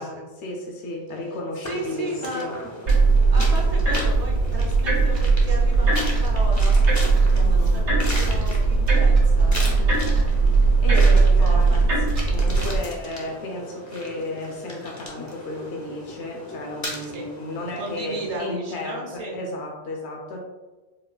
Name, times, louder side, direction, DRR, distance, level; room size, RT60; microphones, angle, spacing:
voice 1, 0.4-2.6 7.4-7.8 10.6-11.8 12.2-20.4, left 1 dB, 75° left, 0 dB, 1.0 m, -33 dB
Rock walking river, 1.6-18.4, left 1 dB, 25° left, 0.4 m, -37 dB
voice 2, 1.6-2.5 3.3-10.3 10.9-11.9 17.1-17.3 17.8-19.4, right 1 dB, 40° right, -1 dB, 0.6 m, -35 dB
sound 1, 2.9-12.8, right 3 dB, 85° right, 1.2 m, -19 dB
Clock, 5.1-5.3 6.1-6.4 7.1-7.3 8.1-8.3 9.1-9.3 10.1-10.4 11.1-11.3 12.1-12.4, right 2 dB, 65° right, 1.1 m, -44 dB
4.4 x 2.3 x 2.3 m, 1.2 s
omnidirectional pair, 1.1 m